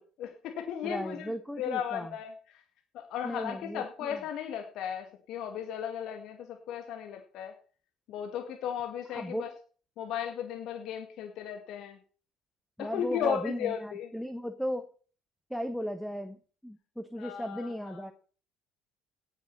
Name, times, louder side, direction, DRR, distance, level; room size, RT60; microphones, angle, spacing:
voice 1, 0.0-2.6 2.9-7.5 8.1-9.5 10.0-12.0 12.8-14.1 17.2-18.1, left 8 dB, 65° left, 5 dB, 1.9 m, -36 dB
voice 2, 0.8-2.1 3.2-4.2 9.1-9.5 12.8-14.9 15.5-16.4 16.6-18.1, equal, ahead, 9 dB, 1.2 m, -36 dB
17.0 x 6.8 x 5.7 m, 0.41 s
hypercardioid pair, 70°, 0 cm